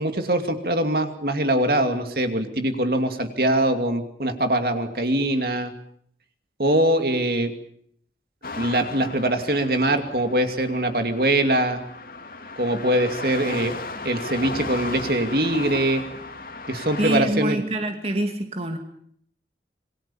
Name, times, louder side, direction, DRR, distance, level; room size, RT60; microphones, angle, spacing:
voice 1, 0.0-5.7 6.6-7.5 8.6-11.8 12.6-13.7 14.0-16.0 16.7-17.6, right 1 dB, 60° right, 7 dB, 2.6 m, -22 dB
sound 1, 8.4-17.2, left 3 dB, 55° left, 3.2 m, -36 dB
voice 2, 17.0-18.8, right 1 dB, 35° right, 5 dB, 2.3 m, -25 dB
27.0 x 22.0 x 7.2 m, 0.66 s
head